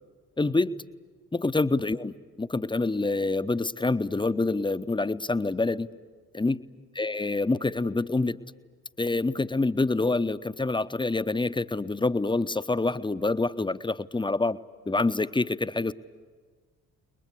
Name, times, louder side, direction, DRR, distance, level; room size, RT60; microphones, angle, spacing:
voice 1, 0.4-0.7 1.3-5.9 6.3-6.6 6.9-8.4 9.0-14.6 14.9-15.9, left 3 dB, 10° left, 12 dB, 0.8 m, -26 dB
29.5 x 21.5 x 8.2 m, 1.4 s
figure-of-eight pair, 45°, 42 cm